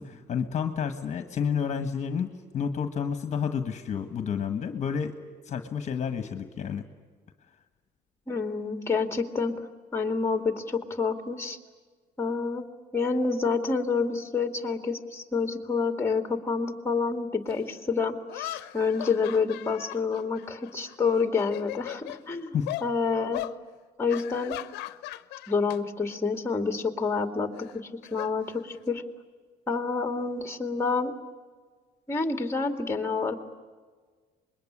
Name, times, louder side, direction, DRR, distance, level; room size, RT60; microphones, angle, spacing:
voice 1, 0.0-5.1 5.4-6.8 22.5-22.7, left 7 dB, 45° left, 8 dB, 1.5 m, -30 dB
voice 2, 8.3-9.5 9.9-11.6 12.2-12.7 12.9-22.6 22.8-23.4 24.0-24.6 25.5-29.0 29.7-31.1 32.1-33.3, left 4 dB, 15° left, 6 dB, 2.3 m, -28 dB
sound 1, 17.5-17.6 18.3-20.9 21.3-22.2 22.7-22.9 23.3-23.6 24.1-25.8 26.1-26.4 27.6-29.0, left 17 dB, 90° left, 0.8 m, -38 dB
25.5 x 21.5 x 9.9 m, 1.5 s
cardioid pair, 110°, 17 cm